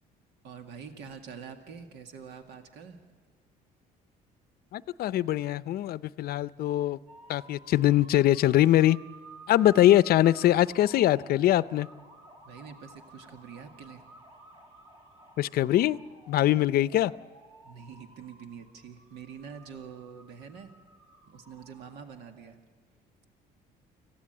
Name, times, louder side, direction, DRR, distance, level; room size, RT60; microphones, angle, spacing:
voice 1, 0.4-3.0 12.5-14.0 17.6-20.7 21.2-22.6, right 6 dB, 80° right, 5 dB, 2.0 m, -45 dB
voice 2, 4.7-7.0 7.3-9.0 9.5-11.9 15.4-16.0 16.3-17.1, left 13 dB, 65° left, 17 dB, 0.6 m, -22 dB
sound 1, 7.1-22.5, right 2 dB, 40° right, 2.4 m, -53 dB
26.0 x 15.5 x 9.0 m, 1.5 s
cardioid pair, 110°, 17 cm